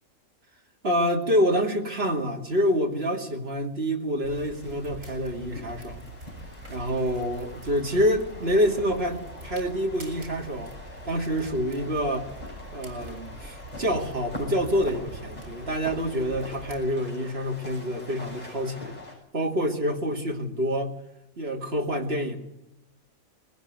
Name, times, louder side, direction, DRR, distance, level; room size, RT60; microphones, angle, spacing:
voice 1, 0.8-6.1 6.7-10.7 11.0-12.3 12.7-18.9 19.3-20.9 21.4-22.4, equal, 45° right, 1 dB, 2.8 m, -27 dB
sound 1, 4.2-19.1, left 2 dB, 30° left, 7.5 m, -44 dB
sound 2, 4.2-16.8, right 1 dB, 75° right, 5.8 m, -44 dB
21.5 x 15.5 x 9.4 m, 0.89 s
omnidirectional pair, 1.4 m